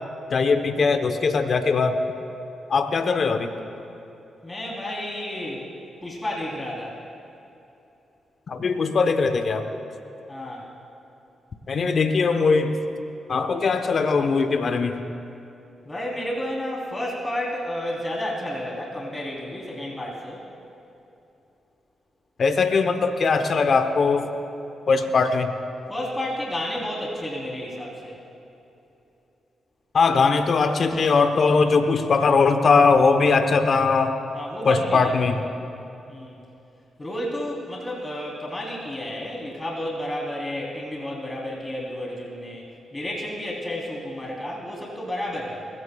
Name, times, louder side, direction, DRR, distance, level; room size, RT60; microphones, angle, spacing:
voice 1, 0.3-2.0 2.7-3.5 8.5-9.7 11.7-12.8 13.3-15.0 22.4-24.3 24.9-25.5 29.9-34.2 34.6-35.4, left 4 dB, 60° left, 8 dB, 0.9 m, -20 dB
voice 2, 4.4-5.7 6.0-7.0 10.3-10.7 15.9-20.4 25.9-28.2 34.3-35.1 36.1-36.4 37.0-42.6 42.9-45.7, left 1 dB, 25° left, -3 dB, 3.5 m, -31 dB
21.0 x 16.5 x 2.3 m, 2.9 s
hypercardioid pair, 40°, 0 cm